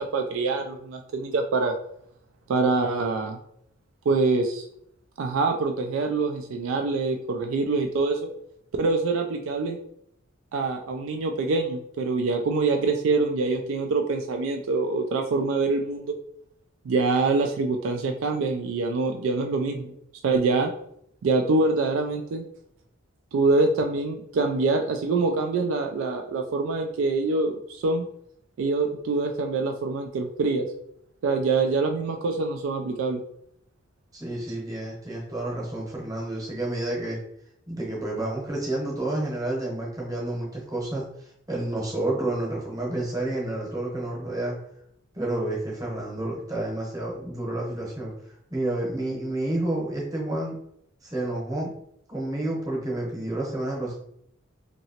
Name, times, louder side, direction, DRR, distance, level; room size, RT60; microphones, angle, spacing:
voice 1, 0.0-1.7 2.5-3.4 4.1-4.7 5.2-8.3 8.8-9.8 10.5-16.1 16.8-19.9 20.2-20.7 21.2-22.4 23.3-28.0 28.6-30.7 31.2-33.2, right 3 dB, 65° right, 4 dB, 0.3 m, -25 dB
voice 2, 34.1-37.2 37.7-44.6 45.1-48.1 48.5-50.5 51.0-51.7 52.1-53.9, right 1 dB, 15° right, -4 dB, 0.9 m, -30 dB
2.9 x 2.8 x 2.8 m, 0.72 s
head